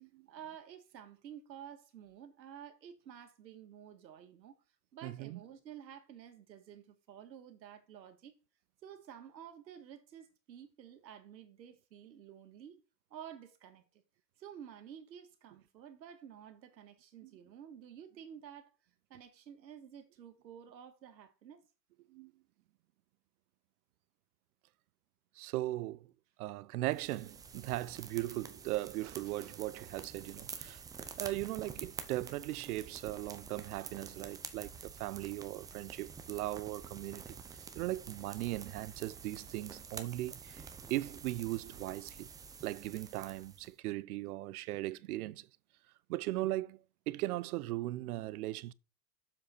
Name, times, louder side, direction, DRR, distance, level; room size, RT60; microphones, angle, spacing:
voice 1, 0.3-4.6 4.9-8.4 8.8-12.8 13.1-14.0 14.4-18.7 19.1-21.6, right 9 dB, 85° right, 1.9 m, -51 dB
voice 2, 5.0-5.4 22.1-22.3 25.4-26.1 26.4-30.8 31.2-37.4 37.7-40.6 40.9-42.3 42.6-45.5 46.1-48.7, right 17 dB, 60° right, 0.7 m, -38 dB
sound 1, 26.9-43.7, right 6 dB, 10° right, 0.4 m, -48 dB
7.8 x 7.3 x 4.4 m
hypercardioid pair, 130°, 49 cm